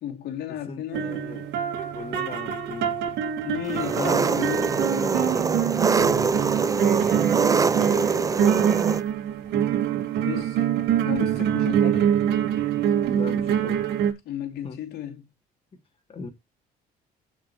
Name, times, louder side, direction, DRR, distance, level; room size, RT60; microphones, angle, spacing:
voice 1, 0.0-1.3 3.4-5.6 10.2-10.7 11.0-12.2 14.2-15.2, left 10 dB, 75° left, 2.8 m, -34 dB
voice 2, 0.7-1.5 1.9-2.9 6.8-7.3 13.1-13.8 14.6-14.8 16.1-16.3, left 4 dB, 35° left, 2.6 m, -39 dB
sound 1, 0.9-14.1, right 9 dB, 80° right, 2.3 m, -25 dB
Engine, 3.7-9.0, right 4 dB, 20° right, 0.5 m, -24 dB
16.5 x 5.9 x 3.1 m
cardioid pair, 110°, 17 cm